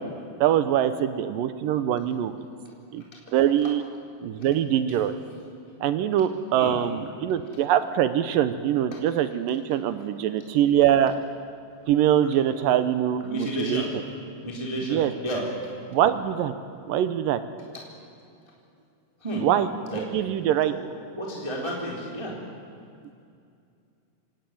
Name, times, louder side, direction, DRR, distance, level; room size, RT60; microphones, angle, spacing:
voice 1, 0.4-2.3 2.9-3.0 3.3-3.8 4.2-5.1 5.8-11.1 11.9-14.0 14.8-15.1 15.9-16.5 16.9-17.4 19.4-19.7 19.9-20.7, right 10 dB, 75° right, 11 dB, 2.2 m, -23 dB
voice 2, 13.3-13.9 14.4-15.4 19.2-19.4 19.9-20.0 20.6-20.7 21.2-22.3, equal, 10° right, -2 dB, 2.9 m, -31 dB
27.5 x 17.5 x 9.4 m, 2.4 s
omnidirectional pair, 4.8 m